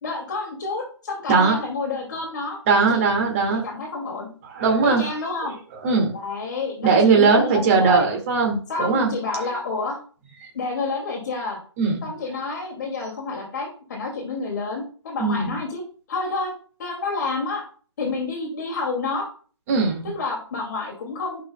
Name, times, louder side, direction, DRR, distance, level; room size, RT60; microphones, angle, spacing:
voice 1, 0.0-2.6 2.9-3.0 3.6-4.3 4.8-5.5 6.1-8.1 8.7-10.0 10.5-11.6 12.0-15.8 16.1-16.5 16.8-17.6 18.0-19.3 20.0-21.4, left 3 dB, 40° left, 0 dB, 2.2 m, -29 dB
voice 2, 2.7-3.6 4.5-5.1 5.8-6.1 6.8-9.1 10.4-10.5 11.8-12.0 15.2-15.6 19.7-20.1, right 4 dB, 30° right, 2 dB, 1.9 m, -19 dB
11.5 x 5.5 x 2.2 m, 0.41 s
hypercardioid pair, 155°, 15 cm